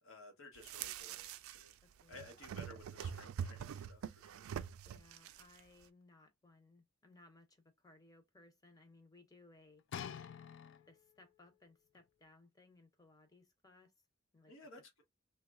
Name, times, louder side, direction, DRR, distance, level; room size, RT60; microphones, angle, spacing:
voice 1, 0.0-1.7 2.1-4.5 14.5-15.0, left 2 dB, 75° left, 1.0 m, -56 dB
sound 1, 0.6-1.7 2.0-5.6, right 8 dB, 80° right, 0.3 m, -45 dB
voice 2, 1.8-2.3 4.8-9.8 10.9-13.9 14.3-14.5, left 2 dB, 20° left, 0.7 m, -64 dB
sound 2, 9.9-11.2 11.9-12.0, left 8 dB, 60° left, 0.3 m, -47 dB
3.0 x 2.3 x 3.5 m
head